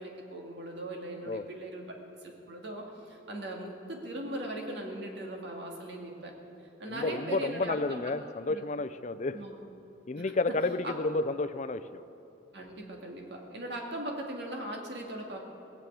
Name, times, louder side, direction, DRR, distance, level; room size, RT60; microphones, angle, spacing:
voice 1, 0.0-1.8 2.2-6.3 6.8-8.1 8.5-8.6 9.3-9.6 10.1-10.3 10.8-10.9 12.5-15.4, right 1 dB, 60° right, 0 dB, 2.3 m, -39 dB
voice 2, 6.9-9.4 10.1-12.0, left 3 dB, 40° left, 13 dB, 0.5 m, -31 dB
18.5 x 7.6 x 8.6 m, 3.0 s
head